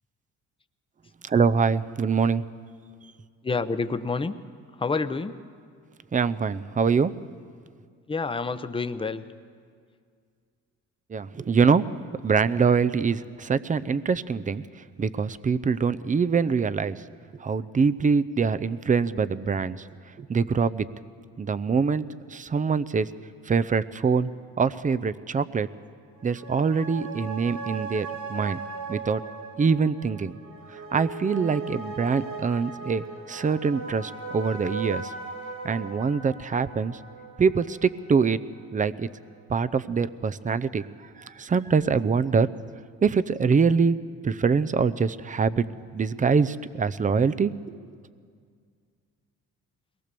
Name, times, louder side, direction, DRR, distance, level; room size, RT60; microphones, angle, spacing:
voice 1, 1.2-2.4 6.1-7.1 11.1-11.9 12.2-14.6 15.0-17.0 17.4-19.9 20.2-20.9 21.4-23.1 23.5-24.3 24.6-25.7 26.2-28.6 28.9-29.2 29.6-30.3 30.9-35.1 35.6-37.0 37.4-38.4 38.7-39.1 39.5-40.8 41.3-42.5 43.0-44.0 44.2-45.6 45.9-47.9, right 5 dB, 25° right, 15 dB, 0.6 m, -24 dB
voice 2, 3.4-4.3 4.8-5.4 8.1-9.2, left 4 dB, 15° left, 11 dB, 0.8 m, -28 dB
sound 1, 26.1-39.0 39.3-39.4, right 4 dB, 70° right, 4.6 m, -38 dB
22.5 x 19.0 x 6.9 m, 2.1 s
cardioid pair, 90°, 30 cm